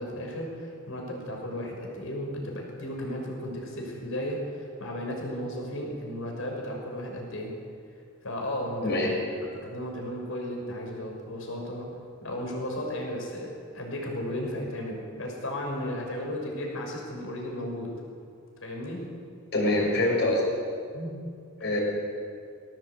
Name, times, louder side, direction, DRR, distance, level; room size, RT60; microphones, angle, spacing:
voice 1, 0.0-7.5 8.2-9.0 9.5-11.9 12.2-17.9 18.6-19.1 20.9-21.2, equal, 70° left, 0 dB, 6.0 m, -34 dB
voice 2, 8.8-9.1 19.5-20.4 21.6-21.8, left 1 dB, 55° left, -2 dB, 6.6 m, -24 dB
20.5 x 17.5 x 8.2 m, 2.3 s
head